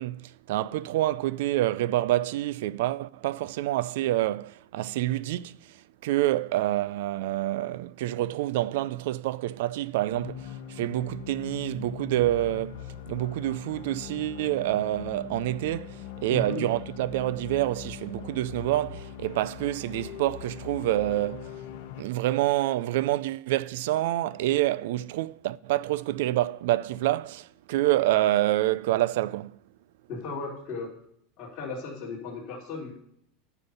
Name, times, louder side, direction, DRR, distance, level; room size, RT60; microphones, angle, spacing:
voice 1, 0.0-21.6 22.0-29.5, right 15 dB, 60° right, 0.3 m, -27 dB
sound 1, 10.1-22.0, left 11 dB, 55° left, 1.2 m, -41 dB
voice 2, 16.3-16.7 30.1-30.9 31.4-32.9, left 4 dB, 30° left, 3.3 m, -36 dB
10.5 x 7.1 x 5.5 m
supercardioid pair, 175°, 0 cm